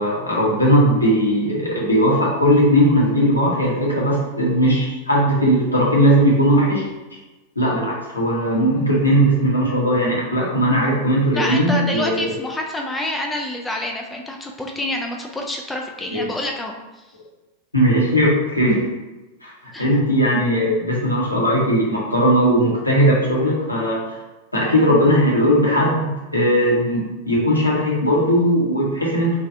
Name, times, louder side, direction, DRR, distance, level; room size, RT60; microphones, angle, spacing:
voice 1, 0.0-6.8 7.6-12.2 16.1-16.2 17.7-18.9 19.4-19.5 19.8-24.2 24.5-29.3, equal, 85° left, -5 dB, 0.8 m, -18 dB
voice 2, 11.3-16.7 19.7-19.9, left 1 dB, 10° left, 1 dB, 0.3 m, -27 dB
3.2 x 2.1 x 2.6 m, 1.1 s
figure-of-eight pair, 90°, 0 cm